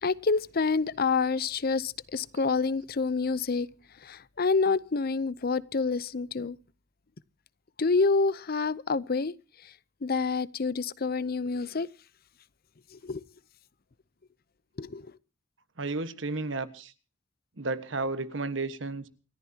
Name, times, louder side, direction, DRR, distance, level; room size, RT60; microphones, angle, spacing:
voice 1, 0.0-3.7 4.0-6.6 7.8-9.3 9.6-9.7 10.0-11.9 12.9-13.2 14.8-15.1, left 4 dB, 55° left, 0.7 m, -27 dB
voice 2, 15.8-16.9 17.6-19.1, right 3 dB, 80° right, 1.4 m, -32 dB
28.5 x 14.0 x 2.9 m
head